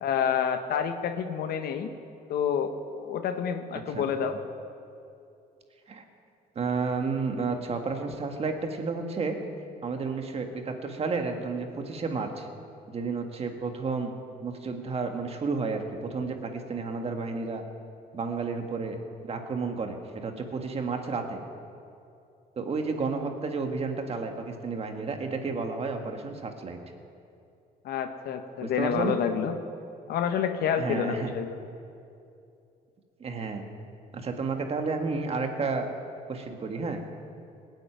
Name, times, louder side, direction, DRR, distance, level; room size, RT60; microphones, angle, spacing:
voice 1, 0.0-1.9 2.3-4.4 27.8-29.5 30.1-31.6, left 8 dB, 70° left, 8 dB, 1.3 m, -28 dB
voice 2, 6.6-9.4 9.8-12.5 12.9-14.1 14.4-17.6 18.1-19.0 19.2-21.4 22.6-26.8 28.6-29.2 30.8-31.3 33.2-33.7 34.1-35.9 36.3-37.0, right 4 dB, 35° right, 4 dB, 1.8 m, -31 dB
19.0 x 8.1 x 9.2 m, 2.6 s
cardioid pair, 110°, 17 cm